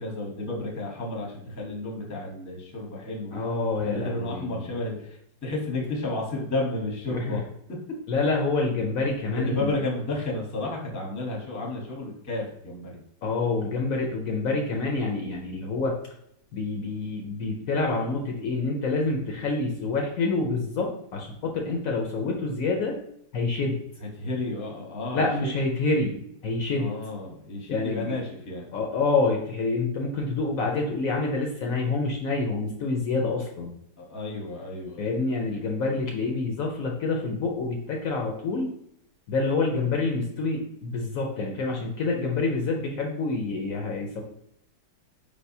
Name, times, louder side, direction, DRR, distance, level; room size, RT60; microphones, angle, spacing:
voice 1, 0.0-3.4 3.8-7.4 9.4-13.0 24.0-25.5 26.7-28.7 34.0-35.0, left 2 dB, 15° left, -2 dB, 0.7 m, -32 dB
voice 2, 3.3-4.6 7.1-7.4 8.1-9.7 13.2-16.0 16.5-23.0 23.3-23.8 25.1-26.9 27.7-28.1 28.7-33.7 35.0-38.7 39.3-44.2, left 3 dB, 65° left, 1 dB, 0.9 m, -27 dB
4.9 x 3.3 x 2.6 m, 0.74 s
omnidirectional pair, 1.7 m